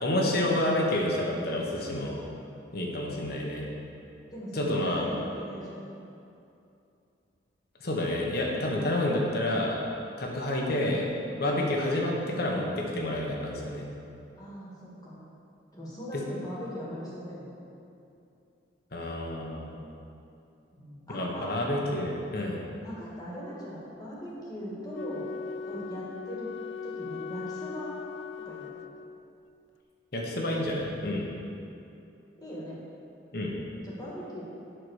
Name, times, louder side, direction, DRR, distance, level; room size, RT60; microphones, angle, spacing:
voice 1, 0.0-2.2 2.7-3.7 4.5-5.1 7.8-9.8 10.2-11.1 11.4-13.9 16.1-16.2 18.9-19.7 21.1-22.6 30.1-31.3 33.3-33.5, left 1 dB, 55° left, -1 dB, 1.3 m, -29 dB
voice 2, 4.3-5.9 14.4-15.2 15.7-17.5 20.8-21.5 22.8-25.3 25.7-26.5 26.8-28.0 28.5-28.8 32.4-32.8 33.8-34.4, equal, 20° left, -6 dB, 1.8 m, -40 dB
Wind instrument woodwind instrument, 24.9-29.3, left 6 dB, 70° left, 0.3 m, -39 dB
8.0 x 5.9 x 6.4 m, 2.7 s
head